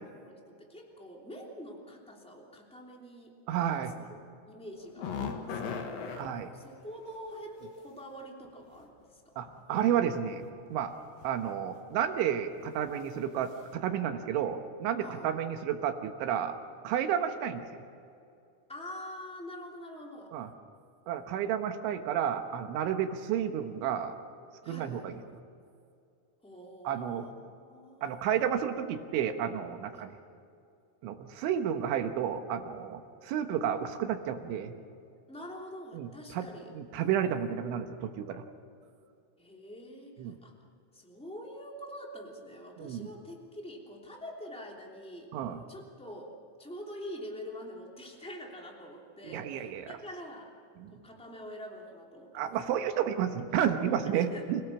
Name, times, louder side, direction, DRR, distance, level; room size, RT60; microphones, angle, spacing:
voice 1, 0.1-3.3 4.0-4.1 4.5-6.3 6.5-9.4 15.0-15.3 18.7-20.3 24.6-25.1 26.4-28.2 29.9-30.1 35.3-36.7 39.4-40.5 40.9-45.3 45.7-46.3 46.6-50.5 50.9-52.5 54.1-54.5, equal, ahead, -1 dB, 1.4 m, -45 dB
voice 2, 3.5-3.9 6.2-6.5 9.4-10.4 10.7-10.9 11.2-16.6 16.8-17.8 20.3-20.5 21.1-24.2 24.7-25.2 26.8-27.3 28.0-30.1 31.0-34.7 35.9-38.4 40.2-40.4 42.8-43.1 45.3-45.6 49.3-49.9 50.8-50.9 52.3-54.6, right 9 dB, 75° right, 6 dB, 3.4 m, -31 dB
sound 1, 4.8-6.3 8.4-8.5 9.5-9.9 10.2-10.5 11.2-11.5 11.9-12.1 12.5-12.6, left 6 dB, 60° left, 2.7 m, -37 dB
28.0 x 17.5 x 7.2 m, 2.4 s
omnidirectional pair, 6.0 m